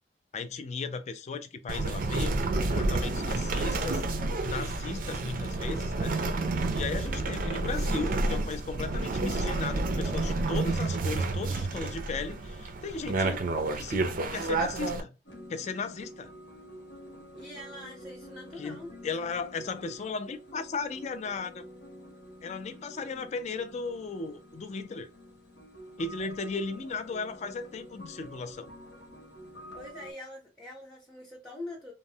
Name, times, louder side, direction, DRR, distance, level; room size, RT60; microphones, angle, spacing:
voice 1, 0.3-2.3 2.6-6.2 6.7-15.2 15.5-16.3 18.6-21.6 22.4-25.1 26.0-28.7, left 4 dB, 40° left, 0.3 m, -36 dB
sound 1, 1.7-15.0, right 2 dB, 50° right, 0.4 m, -30 dB
sound 2, 15.3-30.1, equal, 75° left, 0.9 m, -49 dB
voice 2, 17.3-19.0 29.7-31.9, left 1 dB, 5° left, 0.6 m, -44 dB
3.0 x 2.0 x 2.6 m
head